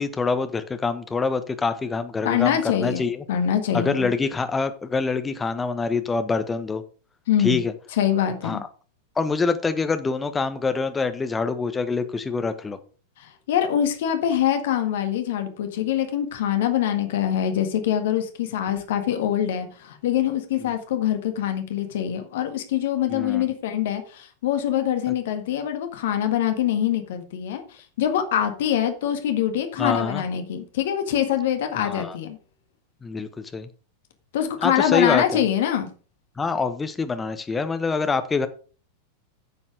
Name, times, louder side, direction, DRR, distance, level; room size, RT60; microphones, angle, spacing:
voice 1, 0.0-3.2 3.7-6.8 7.4-7.7 8.4-8.6 9.1-12.8 20.6-20.7 23.1-23.4 29.8-30.2 31.8-32.2 33.0-33.7 34.6-35.4 36.4-38.5, left 4 dB, 15° left, 1.2 m, -25 dB
voice 2, 2.2-4.1 7.3-7.6 8.0-8.6 13.2-27.6 28.0-32.4 34.3-35.9, left 10 dB, 55° left, 1.7 m, -24 dB
9.9 x 7.2 x 5.0 m
figure-of-eight pair, 90°, 0 cm